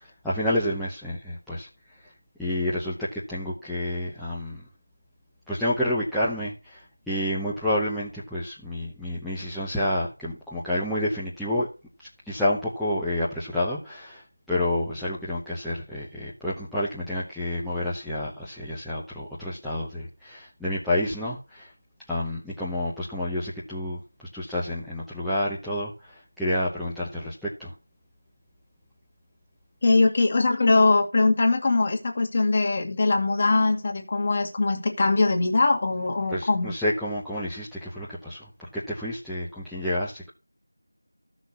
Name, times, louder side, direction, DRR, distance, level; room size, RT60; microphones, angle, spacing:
voice 1, 0.2-1.7 2.4-4.6 5.5-11.7 12.0-21.7 22.1-27.7 36.3-40.3, left 1 dB, ahead, 0.9 m, -29 dB
voice 2, 29.8-36.7, left 3 dB, 30° left, 2.1 m, -22 dB
14.5 x 6.1 x 5.6 m
figure-of-eight pair, 175°, 0 cm